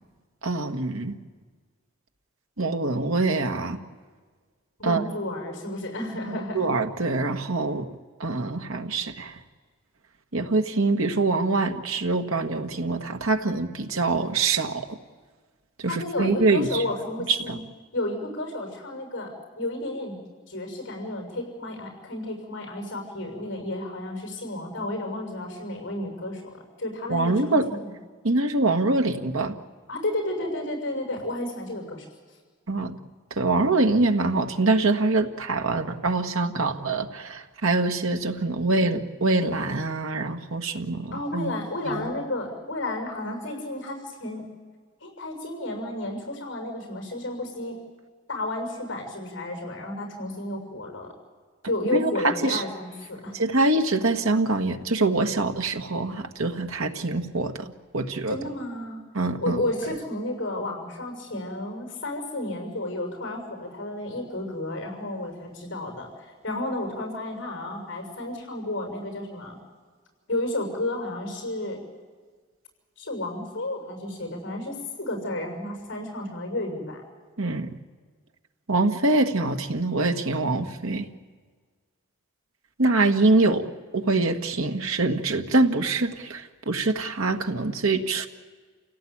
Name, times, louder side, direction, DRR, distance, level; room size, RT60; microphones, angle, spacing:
voice 1, 0.4-1.2 2.6-3.8 4.8-5.1 6.3-7.9 8.2-9.4 10.3-14.9 15.8-16.8 17.3-17.6 27.1-27.7 28.2-29.6 32.7-33.0 33.3-41.5 41.8-42.1 51.9-52.6 53.3-58.4 59.1-59.6 77.4-77.7 78.7-81.1 82.8-83.7 83.9-88.3, right 2 dB, 90° right, 5 dB, 1.6 m, -24 dB
voice 2, 4.8-6.6 15.9-17.6 17.9-20.2 20.5-27.9 29.9-32.0 41.1-44.4 45.0-47.8 48.3-51.1 51.6-53.4 58.3-59.0 59.4-69.6 70.3-71.8 73.0-77.0, left 1 dB, 65° left, 3 dB, 6.7 m, -32 dB
29.0 x 17.0 x 8.7 m, 1.5 s
head